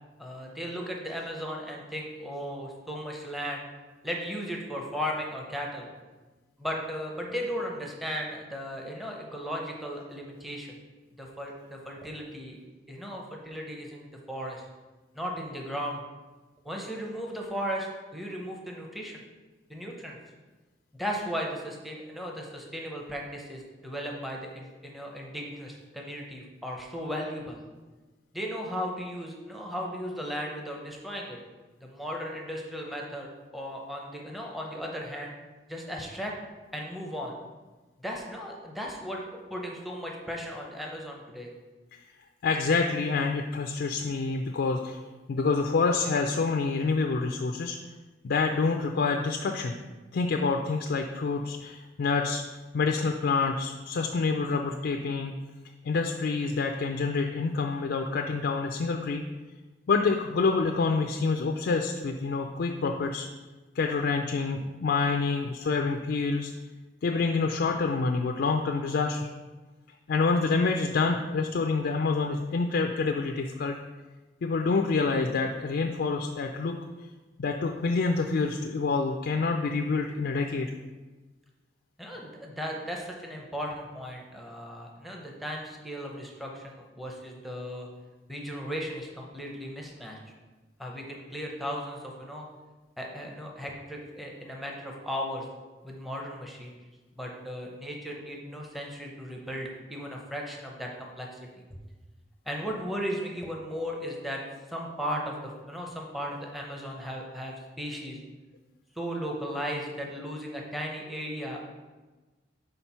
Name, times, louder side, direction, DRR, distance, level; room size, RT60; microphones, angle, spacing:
voice 1, 0.2-3.6 4.0-5.9 6.6-10.8 11.2-12.6 12.9-14.6 15.1-16.0 16.6-19.2 19.7-20.2 21.0-27.6 28.3-31.4 31.8-35.3 35.7-36.3 36.7-37.3 38.0-41.5 82.0-87.9 88.3-90.2 90.8-92.5 93.0-95.4 95.8-101.4 102.5-104.4 104.7-108.2 109.0-111.6, equal, ahead, -1 dB, 0.7 m, -36 dB
voice 2, 42.4-45.0 45.3-47.8 48.2-49.8 50.1-52.4 52.7-55.3 55.8-59.2 59.9-63.3 63.8-66.5 67.0-69.3 70.1-73.8 74.4-76.7 77.4-80.7, left 4 dB, 60° left, 3 dB, 0.4 m, -27 dB
4.4 x 3.9 x 5.5 m, 1.2 s
head